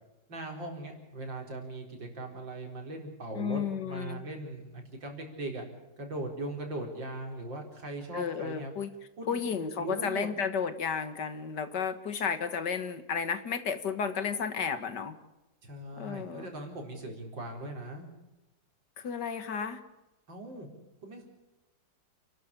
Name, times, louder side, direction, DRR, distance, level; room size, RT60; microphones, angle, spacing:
voice 1, 0.3-5.6 6.0-8.7 9.2-10.3 15.6-18.1 20.3-20.7 21.0-21.2, right 2 dB, 85° right, 2 dB, 5.0 m, -39 dB
voice 2, 3.4-4.2 8.1-8.9 9.3-15.1 16.0-16.5 19.0-19.8, left 6 dB, 65° left, 10 dB, 2.1 m, -33 dB
29.0 x 12.5 x 8.6 m, 1.0 s
omnidirectional pair, 2.0 m